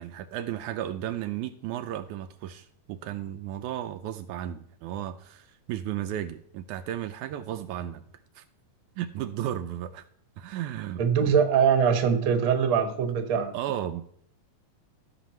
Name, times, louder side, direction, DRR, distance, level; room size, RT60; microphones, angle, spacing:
voice 1, 0.0-8.1 8.4-8.5 9.0-10.1 10.4-11.3 13.5-14.0, right 11 dB, 80° right, 8 dB, 1.9 m, -34 dB
voice 2, 11.0-13.5, right 7 dB, 55° right, 7 dB, 1.5 m, -22 dB
16.5 x 6.3 x 3.1 m, 0.66 s
omnidirectional pair, 3.6 m